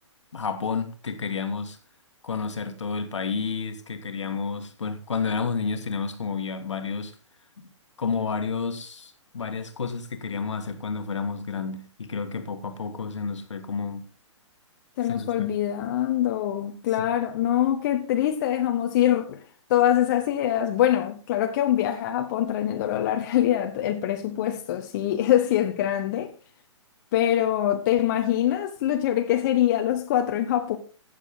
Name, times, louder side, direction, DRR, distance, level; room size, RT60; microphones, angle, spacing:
voice 1, 0.3-1.8 2.2-7.1 7.6-7.7 8.0-14.0 15.0-15.5, left 5 dB, 65° left, 1.8 m, -30 dB
voice 2, 15.0-19.4 19.7-26.3 27.1-30.8, left 11 dB, 35° left, 1.2 m, -24 dB
16.0 x 6.9 x 3.7 m
figure-of-eight pair, 125°, 16 cm